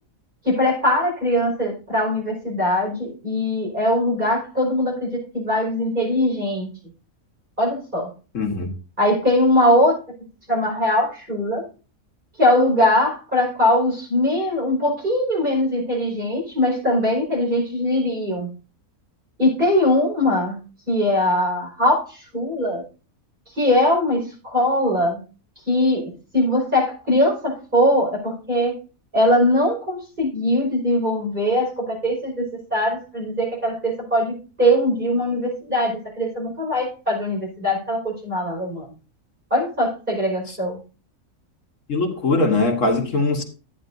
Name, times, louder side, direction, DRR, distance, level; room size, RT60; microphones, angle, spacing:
voice 1, 0.4-6.7 7.6-8.1 9.0-10.0 10.5-11.6 12.4-18.5 19.4-20.6 20.9-22.8 23.5-25.2 25.7-28.8 29.1-38.9 39.5-40.8, left 1 dB, 35° right, 5.4 m, -21 dB
voice 2, 8.3-8.7 41.9-43.4, left 3 dB, 65° left, 1.7 m, -21 dB
12.5 x 9.3 x 2.7 m
omnidirectional pair, 1.4 m